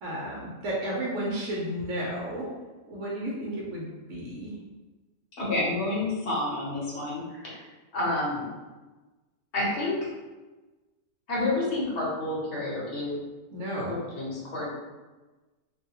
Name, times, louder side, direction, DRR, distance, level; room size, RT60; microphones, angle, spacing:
voice 1, 0.0-2.5 2.9-4.5 13.5-14.0, right 1 dB, 65° right, -4 dB, 0.9 m, -32 dB
voice 2, 5.4-7.6 7.9-8.5 9.5-10.0 11.3-13.1 13.8-14.7, left 2 dB, 55° left, -6 dB, 1.0 m, -29 dB
2.6 x 2.2 x 2.8 m, 1.2 s
omnidirectional pair, 1.5 m